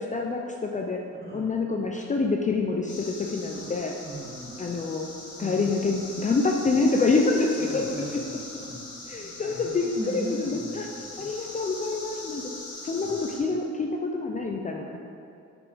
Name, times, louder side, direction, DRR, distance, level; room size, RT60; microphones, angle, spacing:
voice 1, 0.0-1.0 1.3-4.0 4.6-5.1 5.4-7.9 8.1-8.2 9.1-9.8 10.1-10.9 11.2-12.5 12.8-15.0, left 3 dB, 25° left, 1 dB, 0.5 m, -26 dB
sound 1, 2.9-13.4, left 2 dB, 90° left, 1.6 m, -41 dB
voice 2, 4.0-4.8 5.4-6.0 7.7-10.9 11.2-11.3 13.0-13.1 13.4-13.5, right 1 dB, 35° right, -4 dB, 1.7 m, -39 dB
6.7 x 5.2 x 4.9 m, 2.6 s
cardioid pair, 115°, 29 cm